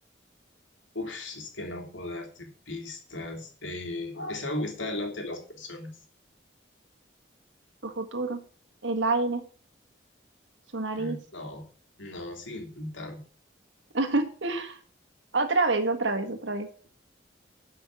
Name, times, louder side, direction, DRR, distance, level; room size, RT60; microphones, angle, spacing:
voice 1, 0.9-5.9 10.9-11.7 12.0-13.2, left 2 dB, 90° left, 3 dB, 3.1 m, -36 dB
voice 2, 7.8-8.4 8.8-9.4 10.7-11.2 13.9-14.8 15.3-16.9, right 3 dB, 80° right, 6 dB, 1.7 m, -27 dB
11.5 x 5.8 x 7.1 m, 0.43 s
head